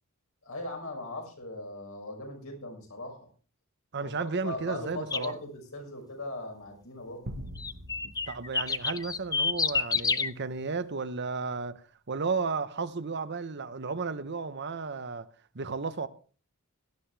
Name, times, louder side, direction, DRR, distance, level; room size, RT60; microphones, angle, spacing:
voice 1, 0.4-3.3 4.0-7.3, left 1 dB, 80° left, 5.9 m, -39 dB
voice 2, 3.9-5.3 8.3-11.8 12.1-15.3 15.5-16.1, right 4 dB, 55° right, 0.9 m, -33 dB
sound 1, 5.1-5.3 7.6-10.3, left 5 dB, 15° left, 0.6 m, -28 dB
sound 2, 7.3-9.8, right 1 dB, 75° right, 1.4 m, -44 dB
17.0 x 12.0 x 3.4 m
head